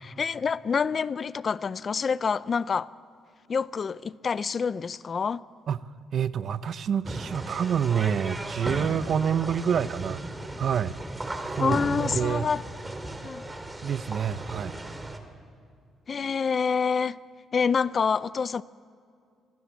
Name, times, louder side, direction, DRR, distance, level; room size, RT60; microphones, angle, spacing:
voice 1, 0.2-2.9 3.5-5.4 11.6-12.6 13.2-13.4 16.1-17.2 17.5-18.6, left 5 dB, 45° left, 0.5 m, -27 dB
voice 2, 6.1-10.2 10.6-11.0 11.5-12.4 13.8-14.8, right 8 dB, 60° right, 0.8 m, -27 dB
sound 1, 7.0-15.2, right 1 dB, 15° right, 2.4 m, -35 dB
26.0 x 20.5 x 7.3 m
cardioid pair, 90°, 0 cm